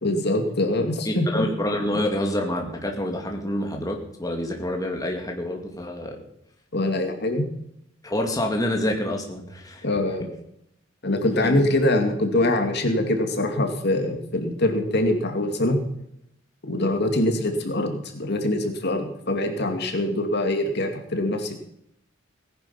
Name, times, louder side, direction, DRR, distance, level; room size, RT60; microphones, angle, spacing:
voice 1, 0.0-1.5 6.7-7.5 9.8-10.3 11.0-15.8 16.6-21.5, left 1 dB, 55° left, 5 dB, 2.4 m, -24 dB
voice 2, 1.1-6.2 8.0-9.8 11.4-11.6 16.8-17.0, left 1 dB, 20° left, 2 dB, 2.2 m, -27 dB
18.5 x 10.5 x 5.8 m, 0.75 s
head